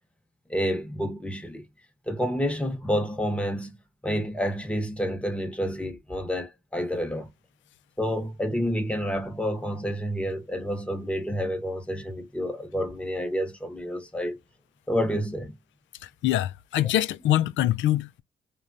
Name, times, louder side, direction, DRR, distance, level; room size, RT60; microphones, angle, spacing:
voice 1, 0.5-1.6 2.1-7.3 8.0-14.4 14.9-15.5, equal, 5° left, 0.9 m, -29 dB
voice 2, 16.0-18.2, left 13 dB, 70° left, 0.4 m, -24 dB
3.1 x 2.3 x 2.6 m
cardioid pair, 90°, 20 cm